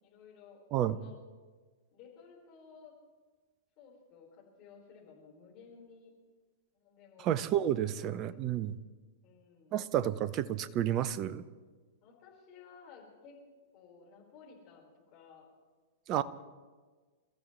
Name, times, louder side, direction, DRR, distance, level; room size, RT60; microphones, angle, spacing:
voice 1, 0.0-0.6 0.9-1.1 1.9-2.9 3.8-6.1 6.8-7.3 7.8-8.6 9.2-9.8 12.0-13.4 13.7-15.5, left 6 dB, 35° left, -2 dB, 4.8 m, -56 dB
voice 2, 7.2-8.8 9.7-11.4 16.1-16.2, right 11 dB, 35° right, 17 dB, 0.6 m, -31 dB
28.0 x 14.0 x 3.3 m, 1.4 s
figure-of-eight pair, 100°, 0 cm